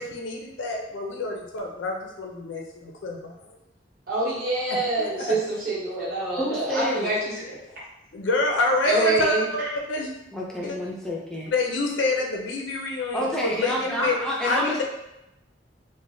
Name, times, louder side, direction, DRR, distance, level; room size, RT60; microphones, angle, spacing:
voice 1, 0.0-3.3 5.0-5.3 8.1-10.1 10.6-10.8 11.5-14.2 14.4-14.8, left 3 dB, 85° left, 1 dB, 0.5 m, -27 dB
voice 2, 4.1-7.5 8.8-9.7, right 2 dB, 55° right, -8 dB, 1.2 m, -26 dB
voice 3, 6.4-7.1 10.3-11.5 13.1-14.8, left 1 dB, 5° left, -4 dB, 0.4 m, -28 dB
3.2 x 2.1 x 2.6 m, 0.88 s
head